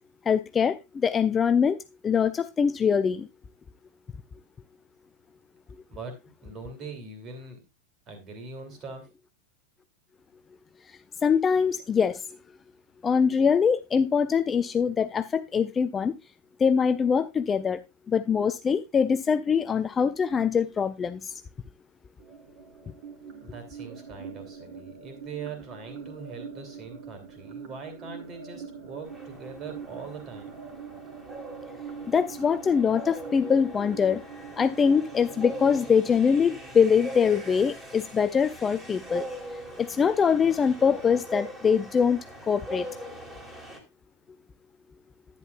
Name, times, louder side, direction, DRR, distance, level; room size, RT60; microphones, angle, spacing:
voice 1, 0.3-0.8 1.0-1.8 2.0-3.3 11.2-12.2 13.0-16.1 16.6-17.8 18.1-21.2 32.1-34.2 34.6-39.2 39.8-42.2 42.5-42.9, left 6 dB, 20° left, 0.5 m, -23 dB
voice 2, 6.4-7.6 8.1-9.1 23.4-30.6, right 4 dB, 30° right, 3.1 m, -41 dB
sound 1, 22.2-37.2, right 6 dB, 45° right, 2.7 m, -44 dB
sound 2, 29.1-43.8, right 1 dB, 10° right, 2.7 m, -41 dB
11.0 x 9.9 x 2.4 m
figure-of-eight pair, 90°, 0 cm